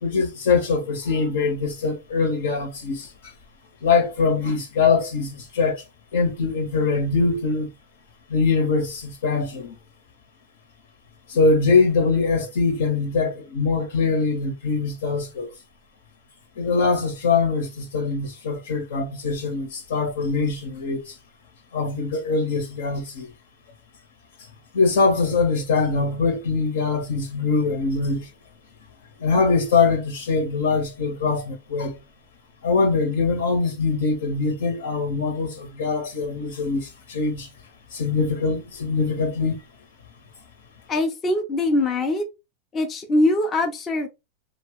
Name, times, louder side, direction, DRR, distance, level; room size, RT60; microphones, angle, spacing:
voice 1, 0.0-3.1 3.8-5.8 6.1-7.7 8.3-9.7 11.3-15.5 16.6-21.2 21.7-23.3 24.7-28.3 29.2-32.0 32.6-37.5 37.9-39.6, left 4 dB, 80° left, 1.2 m, -23 dB
voice 2, 40.9-42.2 42.7-44.1, left 2 dB, 25° left, 0.5 m, -22 dB
2.9 x 2.4 x 3.0 m
supercardioid pair, 135°, 0 cm